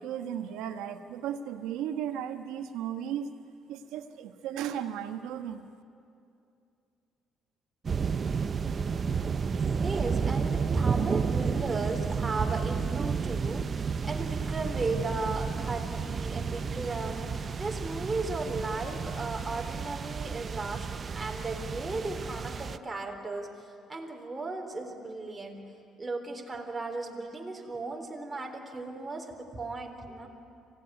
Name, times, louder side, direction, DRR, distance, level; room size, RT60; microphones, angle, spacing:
voice 1, 0.0-3.3 3.7-5.7, right 9 dB, 85° right, 6 dB, 1.5 m, -35 dB
sound 1, 7.8-22.8, right 6 dB, 35° right, 0.8 m, -31 dB
voice 2, 9.8-20.9 21.1-25.6 26.0-30.3, right 3 dB, 20° right, 1 dB, 3.8 m, -36 dB
25.5 x 17.0 x 9.8 m, 2.5 s
cardioid pair, 110°, 0 cm